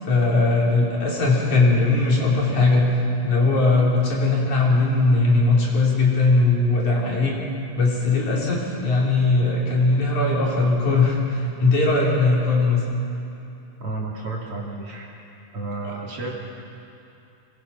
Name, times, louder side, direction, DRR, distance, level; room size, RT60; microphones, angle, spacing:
voice 1, 0.0-2.9 3.2-7.4 7.7-12.8 15.8-15.9, left 3 dB, 65° left, -4 dB, 5.1 m, -19 dB
voice 2, 13.8-15.1 15.5-16.3, right 3 dB, 45° right, -3 dB, 3.3 m, -31 dB
25.5 x 22.0 x 5.8 m, 2.8 s
omnidirectional pair, 3.7 m